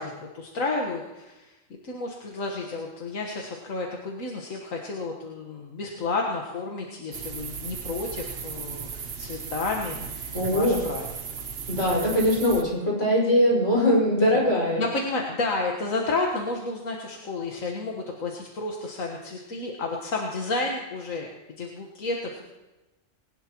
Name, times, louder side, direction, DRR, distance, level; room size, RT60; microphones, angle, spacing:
voice 1, 0.0-1.5 1.8-11.1 11.8-12.1 14.1-14.5 14.8-22.4, left 3 dB, 85° left, 0 dB, 1.9 m, -31 dB
sound 1, 7.1-12.6, right 6 dB, 50° right, 1.1 m, -36 dB
voice 2, 10.3-10.8 11.7-14.8, left 1 dB, 65° left, -4 dB, 6.4 m, -21 dB
20.5 x 18.5 x 3.0 m, 1.0 s
omnidirectional pair, 1.3 m